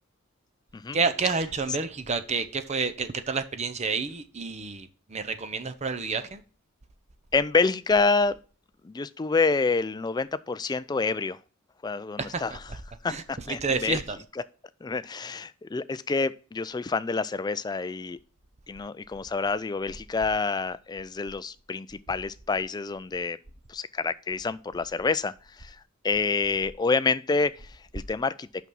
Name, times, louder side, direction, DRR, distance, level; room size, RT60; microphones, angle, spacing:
voice 1, 0.9-6.4 12.2-12.6 13.1-14.2, right 4 dB, 30° right, 0.7 m, -29 dB
voice 2, 7.3-8.4 8.8-11.4 11.8-12.5 13.0-14.0 14.8-18.2 18.7-23.4 23.7-25.8 26.0-28.5, left 4 dB, 20° left, 0.3 m, -27 dB
6.0 x 5.8 x 5.5 m
head